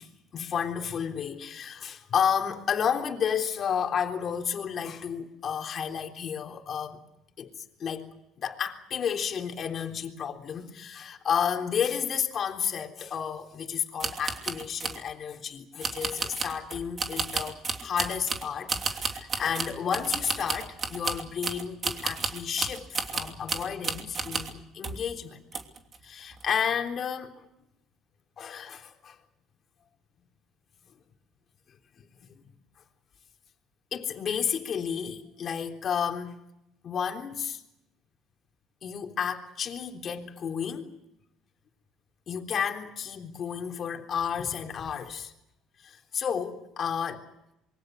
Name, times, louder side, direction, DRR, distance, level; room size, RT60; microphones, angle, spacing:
voice 1, 0.0-7.0 7.4-8.1 8.4-25.4 26.0-27.4 28.4-29.2 32.0-32.4 33.9-36.3 36.8-37.6 38.8-40.9 42.3-45.3 45.8-47.3, left 7 dB, 40° left, 3.6 m, -32 dB
Typewriter Machine, 14.0-15.0 15.8-24.6 24.8-25.1 25.5-26.0 26.3-26.5, right 4 dB, 30° right, 2.9 m, -33 dB
26.5 x 23.5 x 6.5 m
cardioid pair, 125°, 0 cm